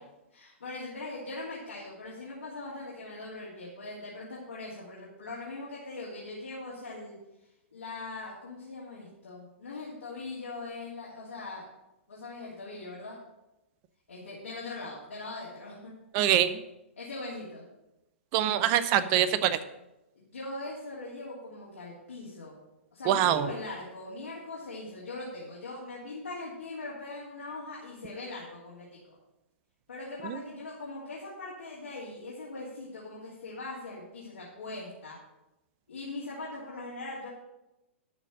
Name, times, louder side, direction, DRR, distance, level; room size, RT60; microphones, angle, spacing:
voice 1, 0.3-7.2 7.7-11.6 12.1-13.2 14.1-15.9 17.0-17.6 20.1-22.6 22.9-29.2 29.9-35.2 35.9-37.3, left 2 dB, 85° left, -7 dB, 2.8 m, -41 dB
voice 2, 16.1-16.6 18.3-19.6 23.1-23.5 30.2-30.4, right 11 dB, 40° right, 12 dB, 0.7 m, -24 dB
12.0 x 4.3 x 7.4 m, 0.95 s
hypercardioid pair, 125°, 7 cm